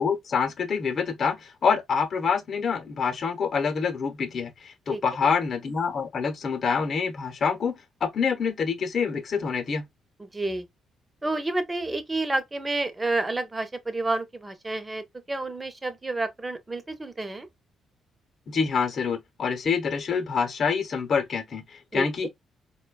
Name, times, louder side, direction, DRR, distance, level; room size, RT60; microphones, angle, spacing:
voice 1, 0.0-9.9 18.5-22.3, left 6 dB, 50° left, 0.8 m, -26 dB
voice 2, 10.3-10.6 11.2-17.5 21.9-22.0, right 2 dB, 20° right, 0.6 m, -29 dB
4.2 x 2.2 x 2.2 m
cardioid pair, 90°, 0 cm